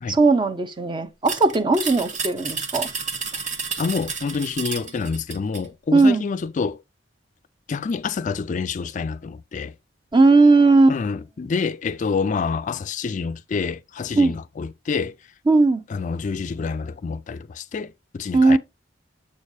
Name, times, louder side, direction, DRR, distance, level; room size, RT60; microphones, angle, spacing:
voice 1, 0.1-2.9 5.9-6.2 10.1-11.0 14.1-14.3 15.5-15.8 18.3-18.6, right 3 dB, 25° right, 0.6 m, -17 dB
sound 1, 1.3-5.7, right 5 dB, 40° right, 1.0 m, -31 dB
voice 2, 3.8-6.8 7.7-9.7 10.9-15.2 15.9-18.6, left 5 dB, 40° left, 0.3 m, -27 dB
7.3 x 6.4 x 2.7 m
head